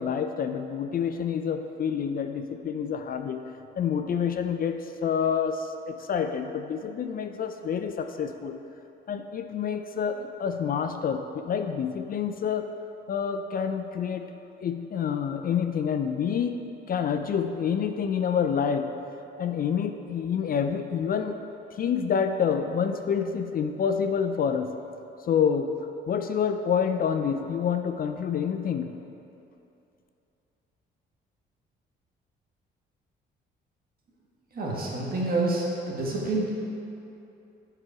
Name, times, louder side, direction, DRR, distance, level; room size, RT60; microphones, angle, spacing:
voice 1, 0.0-3.4 3.8-8.6 9.1-12.7 13.1-14.3 14.6-16.6 16.9-18.9 19.4-21.4 21.8-24.7 25.3-25.8 26.1-28.9, left 7 dB, 45° left, 7 dB, 0.4 m, -28 dB
voice 2, 34.5-36.5, right 2 dB, 50° right, -3 dB, 1.6 m, -28 dB
7.5 x 4.9 x 4.7 m, 2.8 s
cardioid pair, 90°, 20 cm